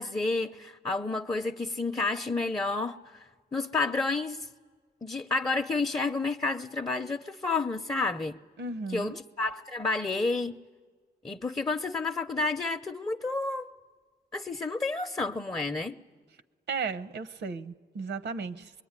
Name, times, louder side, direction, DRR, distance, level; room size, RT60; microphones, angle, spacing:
voice 1, 0.0-4.5 5.0-8.4 8.9-10.6 11.2-13.7 14.3-15.9, left 3 dB, 20° left, 0.7 m, -30 dB
voice 2, 8.6-9.2 16.7-18.8, right 4 dB, 70° right, 0.9 m, -35 dB
24.5 x 21.5 x 9.7 m
cardioid pair, 75°, 18 cm